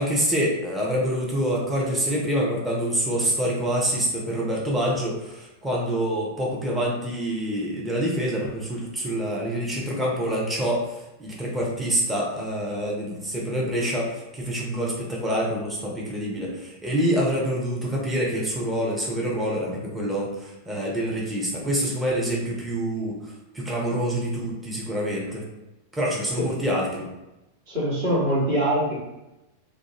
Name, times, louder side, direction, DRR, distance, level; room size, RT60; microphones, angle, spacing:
voice 1, 0.0-25.4 25.9-27.1, equal, 10° right, -4 dB, 0.7 m, -26 dB
voice 2, 27.7-28.9, equal, 50° right, -7 dB, 1.3 m, -23 dB
2.4 x 2.2 x 2.9 m, 0.95 s
figure-of-eight pair, 90°, 0 cm